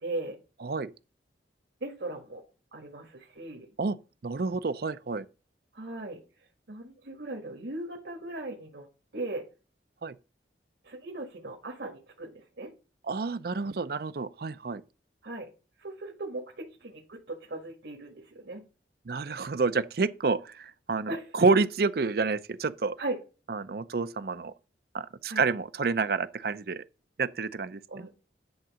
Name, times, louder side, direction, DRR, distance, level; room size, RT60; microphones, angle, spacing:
voice 1, 0.0-0.4 1.8-2.4 2.7-3.7 5.7-6.2 6.7-8.8 9.1-9.5 10.8-12.7 15.2-15.5 15.8-18.6 21.1-21.3 23.0-23.2 25.3-25.5 27.9-28.1, right 2 dB, 75° right, 1.6 m, -38 dB
voice 2, 0.6-0.9 3.8-4.0 4.2-5.3 10.0-10.1 13.1-14.8 19.1-23.0 23.5-24.5 24.9-26.8 27.2-28.1, right 4 dB, 55° right, 0.5 m, -29 dB
10.5 x 3.8 x 6.3 m
head